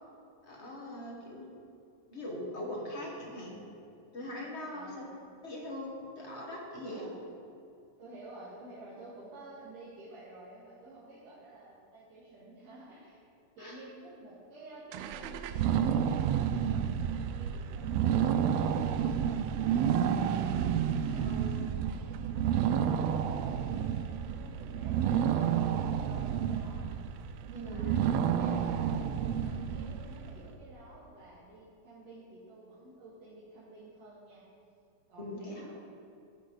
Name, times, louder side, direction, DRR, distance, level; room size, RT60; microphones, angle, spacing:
voice 1, 0.4-1.5 2.1-3.6 4.1-5.0 5.4-7.1 13.6-13.8 21.0-21.7 27.5-27.8 35.2-35.6, left 1 dB, 40° left, -2 dB, 1.0 m, -41 dB
voice 2, 4.7-5.1 6.9-7.3 8.0-13.2 13.6-20.7 22.7-25.6 25.9-26.9 27.5-28.9 29.1-34.4 35.1-35.8, right 2 dB, 60° right, -9 dB, 2.8 m, -51 dB
sound 1, 14.9-30.3, right 8 dB, 80° right, 1.5 m, -30 dB
11.0 x 10.0 x 4.0 m, 2.6 s
omnidirectional pair, 3.3 m